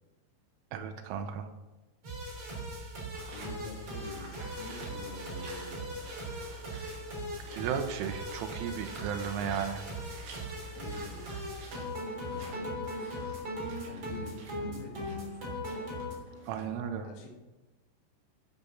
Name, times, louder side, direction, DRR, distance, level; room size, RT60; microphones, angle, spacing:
voice 1, 0.7-1.5 7.5-9.9 16.5-17.1, right 8 dB, 80° right, 7 dB, 3.2 m, -34 dB
sound 1, 2.0-16.1, equal, 30° right, 3.8 m, -39 dB
sound 2, 3.1-16.8, right 3 dB, 60° right, 4.4 m, -52 dB
voice 2, 3.3-5.9 10.7-11.4 12.3-12.8 13.8-15.4 17.0-17.3, left 2 dB, 80° left, 0 dB, 4.7 m, -46 dB
13.5 x 6.8 x 5.8 m, 1.1 s
omnidirectional pair, 5.9 m